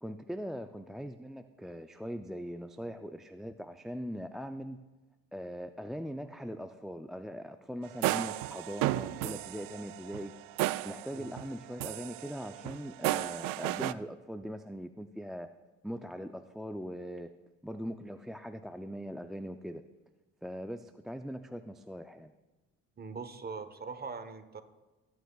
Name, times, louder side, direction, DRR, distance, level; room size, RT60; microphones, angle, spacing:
voice 1, 0.0-4.8 5.3-10.3 10.8-15.5 15.8-17.3 17.6-19.8 20.4-22.3, equal, ahead, 7 dB, 0.4 m, -41 dB
sound 1, 7.9-11.5 11.8-13.9, right 17 dB, 70° right, 0.5 m, -34 dB
voice 2, 23.0-24.6, right 4 dB, 30° right, 9 dB, 1.1 m, -41 dB
18.5 x 9.4 x 2.3 m, 1.2 s
supercardioid pair, 80°, 34 cm